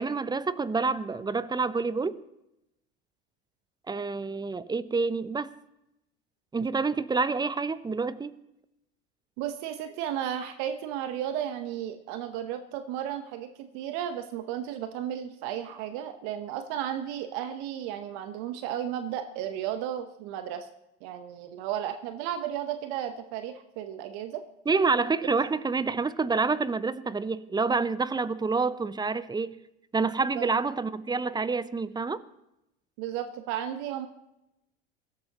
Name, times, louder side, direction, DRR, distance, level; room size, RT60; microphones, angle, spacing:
voice 1, 0.0-2.2 3.9-5.6 6.5-8.4 24.7-29.6 29.9-32.2, right 4 dB, 15° right, 0.6 m, -28 dB
voice 2, 9.4-20.7 21.0-24.4 25.2-25.4 30.0-30.5 33.0-34.1, right 10 dB, 65° right, 1.0 m, -34 dB
22.5 x 12.5 x 3.0 m
hypercardioid pair, 80°, 31 cm